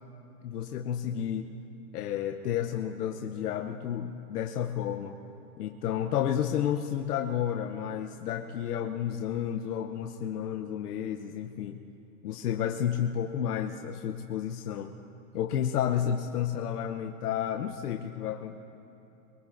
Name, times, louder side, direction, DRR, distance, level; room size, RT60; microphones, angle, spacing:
voice 1, 0.4-1.5 1.9-5.2 5.6-11.8 12.2-14.9 15.3-18.6, left 9 dB, 80° left, 4 dB, 0.9 m, -31 dB
23.5 x 21.0 x 2.6 m, 2.9 s
hypercardioid pair, 140°, 46 cm